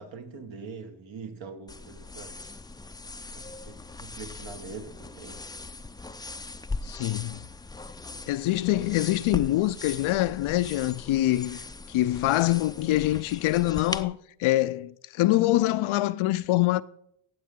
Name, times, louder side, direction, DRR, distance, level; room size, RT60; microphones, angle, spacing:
voice 1, 0.0-2.6 3.3-5.4, right 5 dB, 65° right, 1.5 m, -43 dB
sound 1, 1.7-14.0, left 3 dB, 10° left, 0.4 m, -40 dB
voice 2, 6.8-7.4 8.3-11.6 11.9-16.8, left 16 dB, 75° left, 0.6 m, -25 dB
16.5 x 7.5 x 3.8 m
cardioid pair, 70°, 49 cm